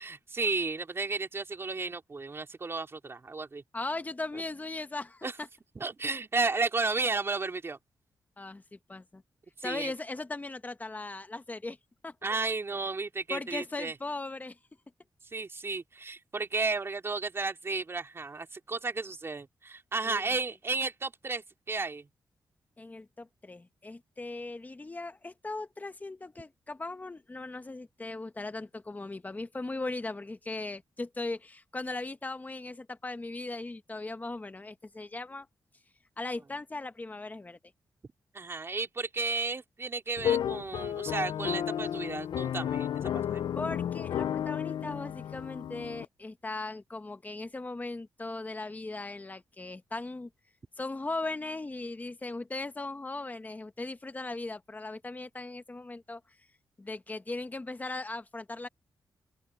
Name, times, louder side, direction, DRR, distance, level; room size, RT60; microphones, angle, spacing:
voice 1, 0.0-3.6 4.3-4.4 5.2-5.3 5.8-7.8 9.6-9.9 12.2-13.9 15.3-22.1 38.3-43.4, right 3 dB, 30° right, 2.7 m, -33 dB
voice 2, 3.7-5.5 8.4-9.2 9.6-11.8 12.0-12.1 13.3-14.6 20.0-20.3 22.8-35.5 36.2-37.6 43.5-50.3 50.8-56.2 56.8-58.7, left 2 dB, 20° left, 1.2 m, -38 dB
sound 1, 40.2-46.1, left 10 dB, 75° left, 0.4 m, -32 dB
open air
wide cardioid pair, 120°, 8 cm